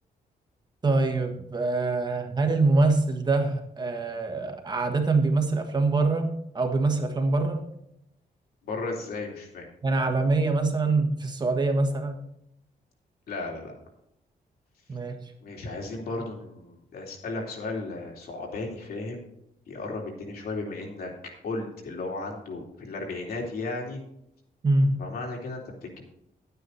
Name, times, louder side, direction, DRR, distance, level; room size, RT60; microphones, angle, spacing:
voice 1, 0.8-7.6 9.8-12.2 14.9-15.2 24.6-25.0, right 3 dB, 25° right, 4 dB, 1.3 m, -24 dB
voice 2, 8.6-9.7 13.3-13.7 15.4-19.2 19.7-21.1 21.4-24.0 25.0-26.0, left 3 dB, 75° left, 0 dB, 3.6 m, -35 dB
11.5 x 9.5 x 4.2 m, 0.77 s
wide cardioid pair, 175°, 16 cm